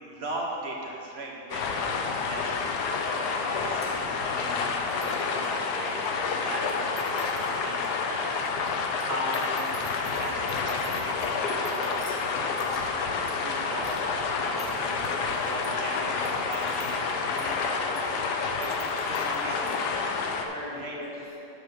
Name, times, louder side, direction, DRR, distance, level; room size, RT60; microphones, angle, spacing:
voice 1, 0.0-7.2 7.6-8.3 8.6-8.7 9.1-12.6 13.0-13.9 14.4-14.8 15.3-18.2 18.5-18.8 19.0-19.7 20.8-21.0, right 1 dB, 40° right, -2 dB, 1.1 m, -39 dB
sound 1, 1.5-20.5, left 4 dB, 70° left, 1.2 m, -29 dB
sound 2, 2.2-2.3 3.1-3.2 3.4-19.7, right 1 dB, 5° right, 0.4 m, -51 dB
voice 2, 14.3-15.5 20.1-21.3, left 1 dB, 25° left, -12 dB, 1.9 m, -43 dB
9.1 x 5.1 x 6.4 m, 2.8 s
omnidirectional pair, 2.0 m